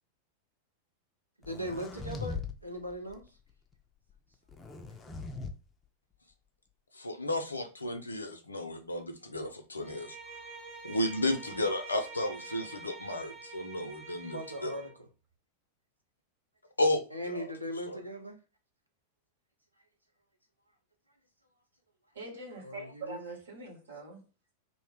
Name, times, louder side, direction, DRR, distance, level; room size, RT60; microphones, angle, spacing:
sound 1, 1.4-2.5 2.9-3.2 4.5-5.5, left 4 dB, 20° left, 0.4 m, -40 dB
voice 1, 1.4-3.2 14.2-15.1 17.1-18.4 22.6-23.2, equal, 85° right, 0.5 m, -39 dB
voice 2, 6.9-10.2 10.8-14.8 16.8-17.5 17.9-18.0, left 1 dB, 80° left, 0.5 m, -33 dB
Bowed string instrument, 9.8-15.0, right 4 dB, 15° right, 1.0 m, -47 dB
voice 3, 22.1-24.2, right 2 dB, 65° right, 1.0 m, -43 dB
2.6 x 2.0 x 3.2 m
figure-of-eight pair, 90°, 0 cm